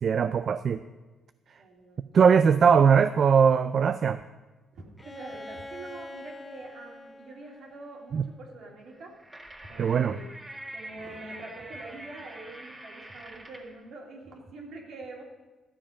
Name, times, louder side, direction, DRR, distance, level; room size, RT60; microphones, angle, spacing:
voice 1, 0.0-0.8 2.1-4.2 8.1-8.2 9.8-10.2, right 6 dB, 55° right, 11 dB, 0.3 m, -20 dB
voice 2, 1.6-2.1 4.7-9.2 9.6-10.3 10.6-15.2, right 2 dB, 70° right, -1 dB, 2.3 m, -45 dB
Bowed string instrument, 5.0-8.8, left 1 dB, 20° left, 0.5 m, -45 dB
sound 1, 8.9-13.8, right 1 dB, 20° right, 1.8 m, -45 dB
12.5 x 7.4 x 5.1 m, 1.2 s
cardioid pair, 90°, 0 cm